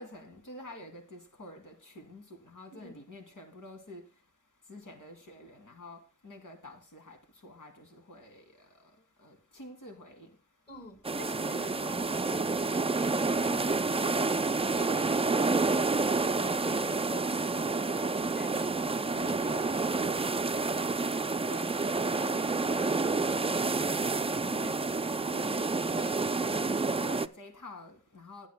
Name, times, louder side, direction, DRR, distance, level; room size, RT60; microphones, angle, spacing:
voice 1, 0.0-4.0 4.7-6.0 6.2-7.2 7.4-8.4 9.2-10.3 21.5-24.7 25.0-25.7 25.9-28.5, left 1 dB, 85° left, 2.7 m, -48 dB
voice 2, 10.7-18.7 19.1-20.5 25.3-25.7, left 2 dB, 35° left, 4.5 m, -47 dB
sound 1, 11.0-27.3, right 3 dB, 20° right, 0.4 m, -29 dB
21.0 x 8.2 x 2.2 m
cardioid pair, 65°, 31 cm